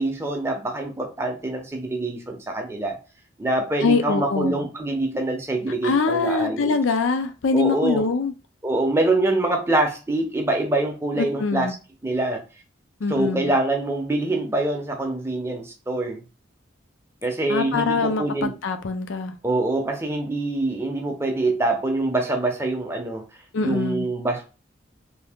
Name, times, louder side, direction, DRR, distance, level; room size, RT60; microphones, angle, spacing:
voice 1, 0.0-3.0 3.4-6.8 7.5-8.0 8.6-11.7 12.0-12.4 13.1-16.2 17.2-18.5 19.4-23.2 23.6-24.4, right 2 dB, 15° right, 0.6 m, -25 dB
voice 2, 3.8-4.6 5.8-8.3 11.2-11.7 13.0-13.5 17.5-19.3 23.5-24.1, left 4 dB, 80° left, 0.5 m, -23 dB
2.7 x 2.7 x 3.4 m
head